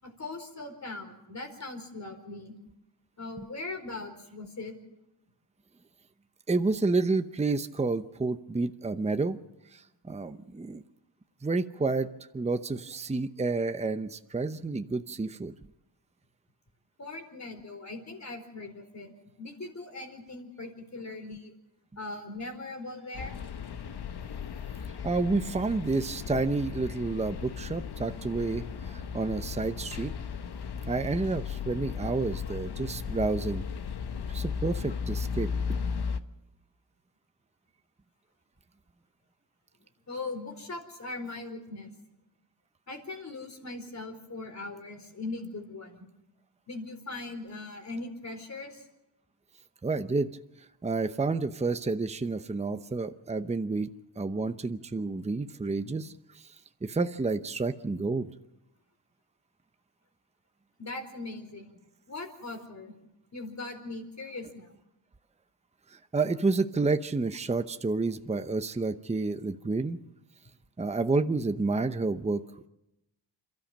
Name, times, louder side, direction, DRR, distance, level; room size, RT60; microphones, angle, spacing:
voice 1, 0.0-2.5 3.2-4.8 17.0-19.1 19.4-21.5 22.0-23.3 40.1-41.9 42.9-46.0 46.7-48.9 60.8-61.8 62.1-62.9 63.3-64.7, left 2 dB, 35° left, 5 dB, 4.5 m, -40 dB
voice 2, 6.5-9.4 9.7-10.8 11.4-12.1 12.3-15.5 25.0-30.1 30.8-33.6 34.3-35.5 49.8-50.3 50.8-53.9 54.2-56.5 56.8-58.3 66.1-70.0 70.8-72.4, right 3 dB, 15° right, 9 dB, 0.8 m, -29 dB
sound 1, 23.1-36.2, left 6 dB, 60° left, 1.2 m, -36 dB
28.0 x 13.0 x 7.5 m, 0.90 s
wide cardioid pair, 110°, 45 cm